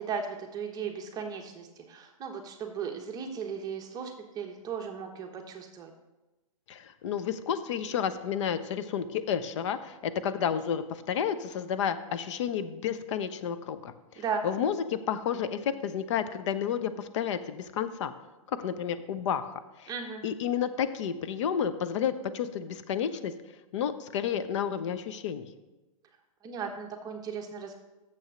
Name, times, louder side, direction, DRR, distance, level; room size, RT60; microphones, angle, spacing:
voice 1, 0.0-5.9 14.2-14.4 19.9-20.2 26.4-27.8, right 6 dB, 20° right, 3 dB, 1.0 m, -36 dB
voice 2, 6.7-18.1 18.6-19.9 20.2-23.3 23.7-25.5, left 8 dB, 55° left, 13 dB, 0.8 m, -31 dB
7.1 x 6.5 x 6.3 m, 1.1 s
hypercardioid pair, 130°, 18 cm